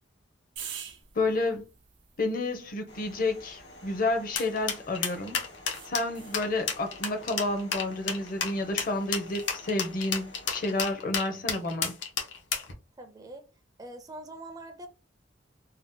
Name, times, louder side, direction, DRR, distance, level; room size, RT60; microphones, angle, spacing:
sound 1, 0.6-5.0 5.7-6.5 9.2-9.6, right 8 dB, 80° right, 0.6 m, -47 dB
voice 1, 1.1-1.6 2.2-5.4 5.9-11.9, left 2 dB, 50° left, 0.6 m, -30 dB
sound 2, 2.9-10.9, left 1 dB, 70° left, 1.1 m, -50 dB
sound 3, 4.4-12.7, left 6 dB, 90° left, 0.7 m, -31 dB
voice 2, 13.0-13.5 13.8-14.9, right 1 dB, 20° right, 0.4 m, -43 dB
2.7 x 2.0 x 3.6 m
head